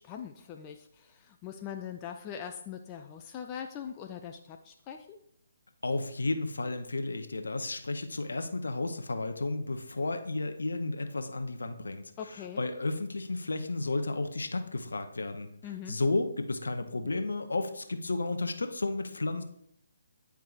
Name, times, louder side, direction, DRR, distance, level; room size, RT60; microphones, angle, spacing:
voice 1, 0.0-5.2 12.2-12.6 15.6-16.0, left 8 dB, 20° left, 5 dB, 0.3 m, -42 dB
voice 2, 5.8-15.5 15.9-19.4, left 2 dB, 65° left, 8 dB, 0.6 m, -32 dB
9.3 x 4.6 x 2.5 m, 0.72 s
figure-of-eight pair, 140°, 0 cm